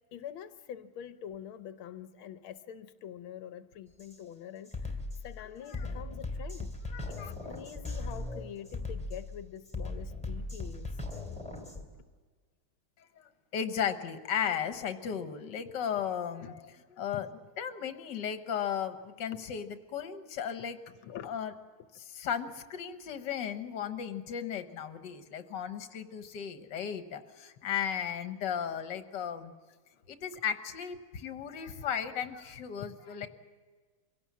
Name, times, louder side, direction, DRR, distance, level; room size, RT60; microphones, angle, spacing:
voice 1, 0.1-5.0 5.2-6.7 7.1-11.0 11.9-12.0 15.1-15.3 15.9-16.0 16.4-16.5 16.9-17.2 19.3-19.4 20.9-21.3 29.9-30.0, left 9 dB, 80° left, 11 dB, 1.7 m, -45 dB
Drum kit, 4.0-4.2 4.7-11.8, left 2 dB, 5° left, 2.8 m, -38 dB
voice 2, 6.9-7.3 13.2-16.6 17.0-17.3 17.6-20.8 21.2-21.5 22.2-29.5 30.1-33.3, left 8 dB, 60° left, 8 dB, 1.8 m, -35 dB
24.5 x 17.0 x 7.4 m, 1.5 s
omnidirectional pair, 2.3 m